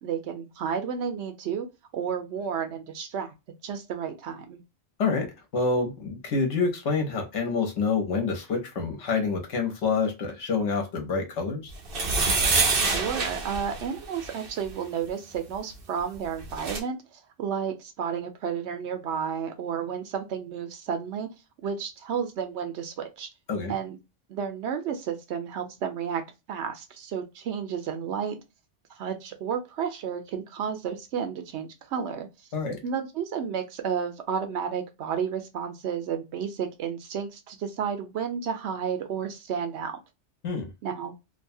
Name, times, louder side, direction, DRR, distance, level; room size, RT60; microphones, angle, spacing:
voice 1, 0.0-1.7 1.9-3.3 3.6-4.6 12.9-17.0 17.4-21.3 21.6-23.3 23.7-24.0 24.3-26.2 26.5-28.4 29.0-32.3 32.8-40.0 40.8-41.1, right 7 dB, 75° right, 0.9 m, -32 dB
voice 2, 5.5-11.6 23.5-23.7 32.5-32.8 40.4-40.7, left 4 dB, 80° left, 1.2 m, -27 dB
sound 1, 11.9-14.5 16.1-16.2 16.4-16.8, right 3 dB, 55° right, 0.9 m, -26 dB
2.7 x 2.2 x 2.6 m
omnidirectional pair, 1.2 m